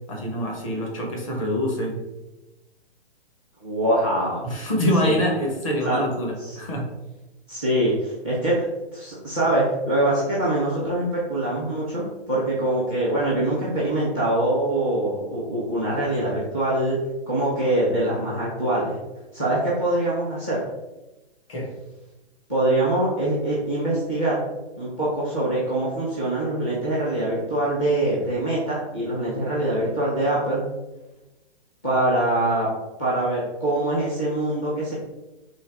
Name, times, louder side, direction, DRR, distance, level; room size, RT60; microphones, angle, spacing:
voice 1, 0.1-2.0 4.4-6.8 21.5-21.7, equal, 30° left, -1 dB, 1.1 m, -25 dB
voice 2, 3.6-4.4 5.0-5.2 5.8-6.0 6.4-6.6 7.5-8.6 8.9-17.0 17.3-19.0 19.3-20.6 22.5-24.4 24.8-30.6 31.8-32.7 33.0-34.9, right 1 dB, 15° left, -8 dB, 0.5 m, -24 dB
3.9 x 3.1 x 4.4 m, 1.0 s
hypercardioid pair, 175°, 32 cm